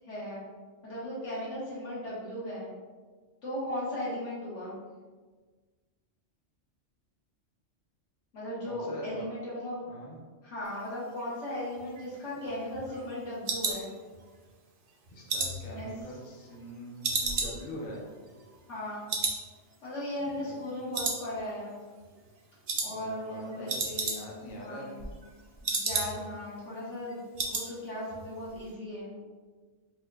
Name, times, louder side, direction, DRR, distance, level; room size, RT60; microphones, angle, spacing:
voice 1, 0.1-0.4 0.8-2.7 3.4-4.8 8.3-9.8 10.4-13.9 15.8-15.9 18.7-19.1 19.8-21.8 22.8-24.2 24.6-25.0 25.6-29.1, left 1 dB, 75° left, -8 dB, 1.5 m, -37 dB
voice 2, 8.6-9.3 9.9-10.2 15.1-18.1 20.2-20.9 22.8-25.0, equal, 50° left, -3 dB, 0.7 m, -44 dB
sound 1, 11.8-14.5 14.9-16.7 17.0-18.8 19.1-19.4 19.7-19.8 20.3-20.7 20.9-21.7 22.0-22.3 22.7-22.9 23.2-23.3 23.5-24.5 24.8-26.4 26.7-26.8 27.1-27.7 28.0-28.3 28.5-28.6, right 3 dB, 65° right, 0.3 m, -33 dB
4.4 x 2.3 x 2.3 m, 1.4 s
omnidirectional pair, 1.2 m